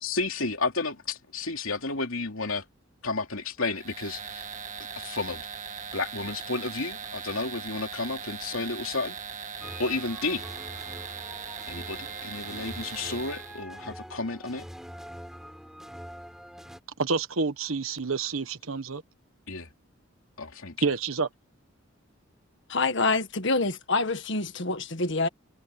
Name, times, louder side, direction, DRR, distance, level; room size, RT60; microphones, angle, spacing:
voice 1, 0.0-2.6 3.0-4.4 5.0-5.5 5.9-9.1 9.8-10.4 11.7-14.6 19.5-19.7 20.4-20.8, left 3 dB, 80° left, 3.0 m, -32 dB
sound 1, 3.7-13.6, right 6 dB, 35° right, 2.0 m, -39 dB
sound 2, 9.6-16.8, equal, ahead, 7.3 m, -44 dB
voice 2, 17.0-19.0 20.8-21.3, right 4 dB, 80° right, 1.2 m, -28 dB
voice 3, 22.7-25.3, left 3 dB, 60° left, 1.7 m, -26 dB
head